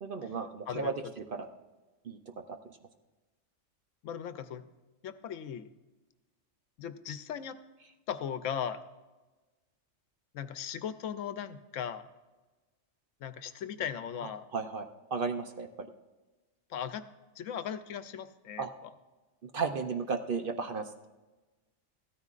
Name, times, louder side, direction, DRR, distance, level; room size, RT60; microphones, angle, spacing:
voice 1, 0.0-1.5 2.0-2.2 14.5-14.8 15.1-15.9 18.6-18.7 19.4-20.9, right 4 dB, 50° right, 6 dB, 0.7 m, -34 dB
voice 2, 0.7-1.1 4.0-4.7 5.0-5.7 6.8-7.6 8.1-8.8 10.3-12.1 13.2-14.5 16.7-17.1 17.4-18.9, left 8 dB, 80° left, 12 dB, 1.0 m, -38 dB
16.0 x 13.5 x 2.5 m, 1.2 s
omnidirectional pair, 1.3 m